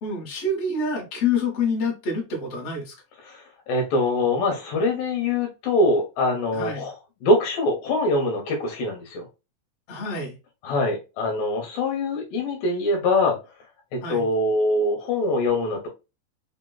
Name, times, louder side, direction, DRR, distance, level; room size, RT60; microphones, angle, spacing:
voice 1, 0.0-2.9 6.5-6.9 9.9-10.4 14.0-14.3, left 3 dB, 50° left, 0 dB, 2.3 m, -27 dB
voice 2, 3.2-6.9 7.2-9.3 10.6-13.4 13.9-15.9, left 2 dB, 70° left, 2 dB, 2.6 m, -23 dB
5.8 x 2.9 x 2.3 m, 0.27 s
omnidirectional pair, 4.5 m